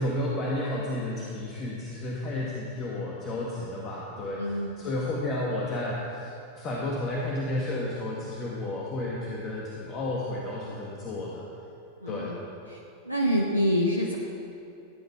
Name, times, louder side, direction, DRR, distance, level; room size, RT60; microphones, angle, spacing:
voice 1, 0.0-11.4 12.1-12.3, left 1 dB, 30° left, -4 dB, 1.7 m, -32 dB
voice 2, 4.4-4.8 12.0-12.4 12.7-14.2, equal, 90° right, -1 dB, 0.9 m, -27 dB
15.0 x 9.5 x 4.6 m, 2.7 s
figure-of-eight pair, 90°, 0 cm